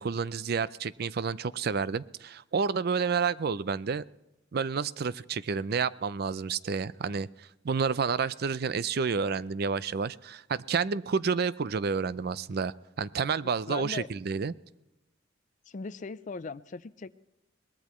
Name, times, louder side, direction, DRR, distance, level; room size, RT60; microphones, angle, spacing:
voice 1, 0.0-4.0 4.5-7.3 7.6-14.5, right 5 dB, 55° right, 17 dB, 0.5 m, -30 dB
voice 2, 13.7-14.1 15.7-17.2, left 4 dB, 40° left, 14 dB, 0.4 m, -38 dB
22.5 x 19.5 x 3.1 m, 0.98 s
head